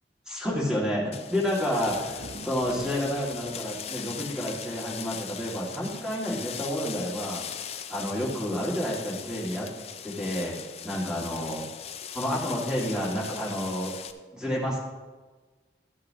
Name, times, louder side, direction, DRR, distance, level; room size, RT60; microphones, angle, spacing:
voice 1, 0.3-7.4 7.9-9.7 10.0-10.6 10.8-11.7 12.1-13.9 14.3-14.8, equal, 5° right, -5 dB, 2.1 m, -30 dB
sound 1, 1.1-14.1, left 8 dB, 35° left, 0.4 m, -40 dB
sound 2, 1.8-5.5 5.8-6.0 6.4-6.8 7.9-8.0 9.1-9.2, right 1 dB, 65° right, 0.9 m, -47 dB
12.5 x 8.5 x 2.9 m, 1.3 s
head